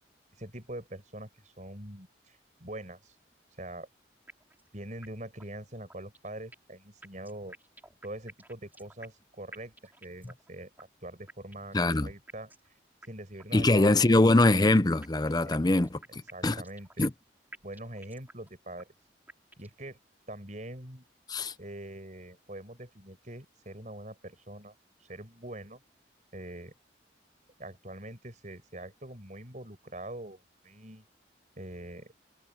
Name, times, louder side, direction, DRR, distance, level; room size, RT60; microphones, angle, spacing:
voice 1, 0.4-3.1 3.6-3.9 4.7-7.5 8.0-11.8 12.0-12.8 13.1-14.3 15.4-15.5 16.3-17.1 17.6-18.9 19.6-20.0 20.3-21.0 21.6-24.7 25.0-25.8 26.3-26.7 27.6-31.0 31.6-32.1, right 1 dB, 45° right, 5.8 m, -43 dB
sound 1, 4.3-4.7 5.0-5.1 5.4-5.5 5.9-6.8 7.0-9.3 9.5-10.5 10.8-10.9 11.3-11.8 12.3-12.7 13.0-13.1 13.4-13.5 13.9-14.8 15.0-17.3 17.5-18.5 18.8-18.9 19.3-19.8, right 2 dB, 10° right, 5.7 m, -51 dB
voice 2, 11.7-12.1 13.5-16.6 17.0-17.1 21.3-21.5, left 2 dB, 20° left, 0.6 m, -23 dB
head